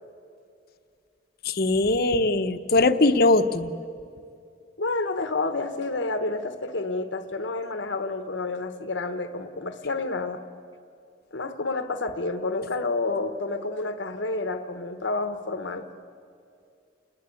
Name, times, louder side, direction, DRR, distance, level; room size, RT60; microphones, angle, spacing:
voice 1, 1.4-3.7, left 2 dB, 55° left, 10 dB, 1.0 m, -21 dB
voice 2, 4.8-10.4 11.3-15.9, left 3 dB, 80° left, 8 dB, 1.2 m, -29 dB
29.5 x 20.5 x 8.5 m, 2.4 s
head